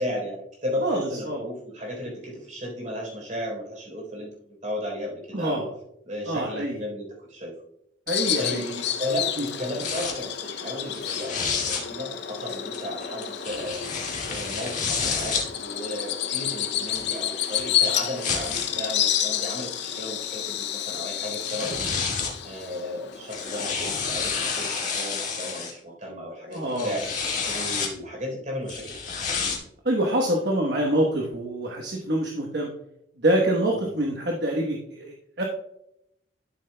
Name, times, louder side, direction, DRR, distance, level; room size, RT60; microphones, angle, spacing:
voice 1, 0.0-4.3 4.6-5.7 6.1-7.6 8.4-8.6 9.0-13.8 14.3-22.2 22.4-27.1 27.4-28.9 33.8-33.9, left 1 dB, 40° right, -2 dB, 3.6 m, -34 dB
voice 2, 0.8-1.4 5.3-5.7 6.3-6.8 8.1-8.8 9.4-9.5 26.5-27.0 29.8-32.7 33.2-35.4, right 1 dB, 60° right, 0 dB, 1.1 m, -26 dB
Bird vocalization bird call bird song, 8.1-24.1, left 10 dB, 60° left, 0.6 m, -30 dB
sound 1, 9.8-10.1 10.9-11.8 12.7-15.4 16.3-18.7 19.5-19.6 21.1-21.2 21.4-22.4 23.1-25.7 26.5-27.9 28.7-29.6, left 5 dB, 40° left, 1.8 m, -29 dB
12.5 x 7.3 x 2.2 m, 0.77 s
head